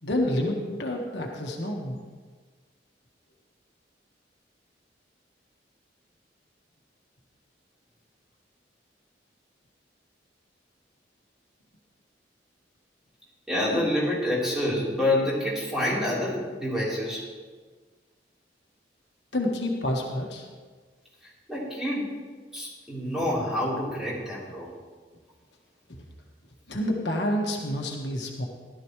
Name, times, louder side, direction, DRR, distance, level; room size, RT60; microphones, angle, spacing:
voice 1, 0.0-2.0 13.7-13.9 19.3-20.5 25.9-26.0 26.7-28.5, left 1 dB, 70° left, 0 dB, 1.5 m, -28 dB
voice 2, 13.5-17.3 21.2-22.1 22.5-24.7, left 1 dB, 5° right, -8 dB, 3.8 m, -27 dB
16.0 x 12.0 x 3.2 m, 1.5 s
head